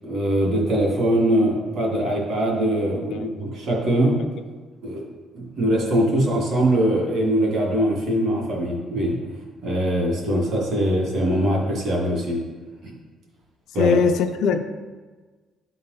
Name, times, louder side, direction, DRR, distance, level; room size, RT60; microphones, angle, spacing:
voice 1, 0.0-4.2 4.8-5.1 5.3-9.2 9.6-12.4 12.8-12.9 13.7-13.9, right 1 dB, 55° right, -2 dB, 2.1 m, -22 dB
voice 2, 13.8-14.6, left 6 dB, 75° left, 7 dB, 0.5 m, -21 dB
11.5 x 4.0 x 4.0 m, 1.4 s
cardioid pair, 175°, 0 cm